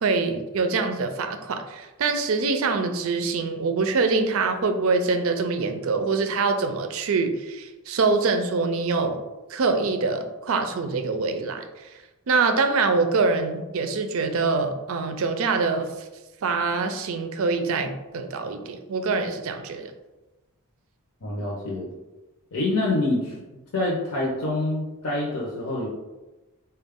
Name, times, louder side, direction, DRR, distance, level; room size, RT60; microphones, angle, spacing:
voice 1, 0.0-9.2 9.5-11.7 12.3-15.9 16.4-19.9, right 4 dB, 65° right, 7 dB, 0.4 m, -24 dB
voice 2, 21.2-21.9 22.5-23.4 23.7-25.9, left 2 dB, 75° left, -4 dB, 0.7 m, -26 dB
3.9 x 2.3 x 3.6 m, 1.1 s
head